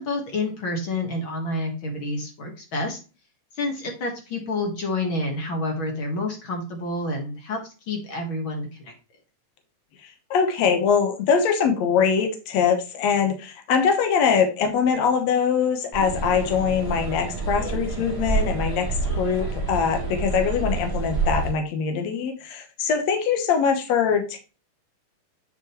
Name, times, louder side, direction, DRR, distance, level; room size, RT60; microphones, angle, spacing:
voice 1, 0.0-3.0 3.5-8.9, left 2 dB, 45° left, 2 dB, 2.1 m, -29 dB
voice 2, 10.3-18.9 19.2-24.4, left 6 dB, 65° left, 5 dB, 2.3 m, -22 dB
sound 1, 15.9-21.5, right 3 dB, 10° right, 3.6 m, -28 dB
8.9 x 5.7 x 3.1 m, 0.32 s
omnidirectional pair, 3.6 m